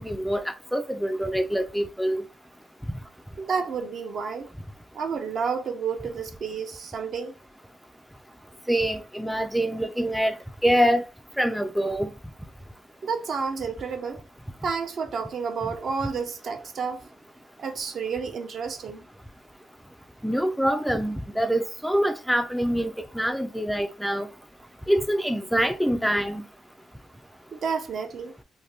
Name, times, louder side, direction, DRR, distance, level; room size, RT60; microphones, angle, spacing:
voice 1, 0.0-2.2 8.7-10.4 10.6-11.0 11.4-12.1 20.2-24.3 24.9-26.4, equal, ahead, 0.3 m, -25 dB
voice 2, 3.4-4.5 4.9-7.3 13.0-14.2 14.6-17.1 17.6-19.0 27.5-28.3, right 5 dB, 55° right, 0.6 m, -30 dB
2.6 x 2.1 x 3.3 m
cardioid pair, 90°, 0 cm